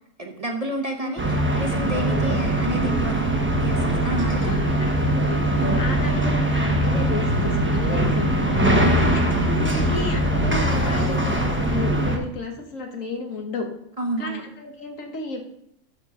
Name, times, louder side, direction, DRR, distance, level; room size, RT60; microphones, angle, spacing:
voice 1, 0.2-4.6 5.6-5.8 8.8-9.2 14.0-14.4, right 1 dB, 30° right, 2 dB, 0.9 m, -30 dB
voice 2, 1.0-1.3 4.4-8.6 9.0-13.7 14.2-15.4, left 3 dB, 80° left, 3 dB, 1.7 m, -33 dB
sound 1, 1.2-12.2, right 1 dB, 10° right, 1.0 m, -21 dB
12.0 x 4.5 x 4.9 m, 0.73 s
omnidirectional pair, 1.3 m